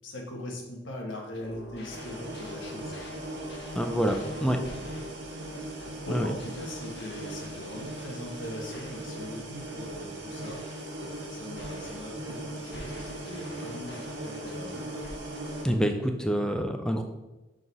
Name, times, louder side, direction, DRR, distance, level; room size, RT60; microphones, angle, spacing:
voice 1, 0.0-3.0 4.6-4.8 5.7-10.6 11.3-14.9, left 1 dB, 80° left, 1 dB, 1.2 m, -40 dB
sound 1, 1.3-15.7, equal, 60° left, 1.1 m, -46 dB
sound 2, 1.9-15.6, right 1 dB, 65° right, 1.2 m, -39 dB
voice 2, 3.7-4.6 6.1-6.3 15.6-17.0, equal, 5° left, 5 dB, 0.4 m, -27 dB
6.1 x 3.9 x 4.0 m, 1.1 s
head